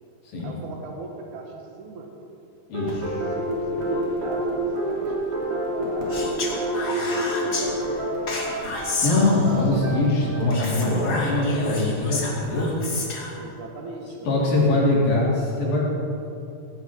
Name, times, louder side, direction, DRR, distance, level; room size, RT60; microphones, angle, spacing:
voice 1, 0.4-2.1 3.1-8.5 13.4-15.1, right 3 dB, 60° right, 2 dB, 3.0 m, -39 dB
voice 2, 2.7-3.3 9.0-12.7 14.3-15.8, left 2 dB, 80° left, -5 dB, 5.4 m, -22 dB
sound 1, 2.7-12.5, right 1 dB, 40° right, 4.0 m, -29 dB
Speech, 6.1-7.7 8.3-9.7 10.5-13.4, left 3 dB, 35° left, 2.2 m, -31 dB
17.5 x 16.5 x 4.7 m, 2.9 s
omnidirectional pair, 4.0 m